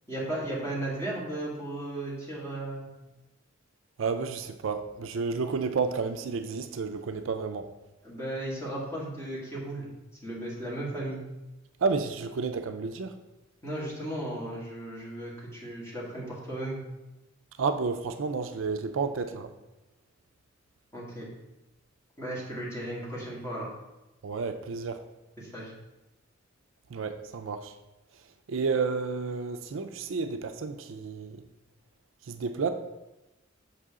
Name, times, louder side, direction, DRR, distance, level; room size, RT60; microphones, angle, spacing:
voice 1, 0.1-2.9 8.0-9.9 10.2-11.2 13.6-16.8 20.9-21.3 22.2-23.7 25.4-25.7, right 1 dB, 15° left, -6 dB, 2.0 m, -35 dB
voice 2, 4.0-7.7 11.8-13.2 17.6-19.5 24.2-25.0 26.9-27.7 28.5-31.4 32.2-32.7, right 4 dB, 70° right, 8 dB, 0.4 m, -31 dB
6.7 x 5.4 x 3.7 m, 1.0 s
head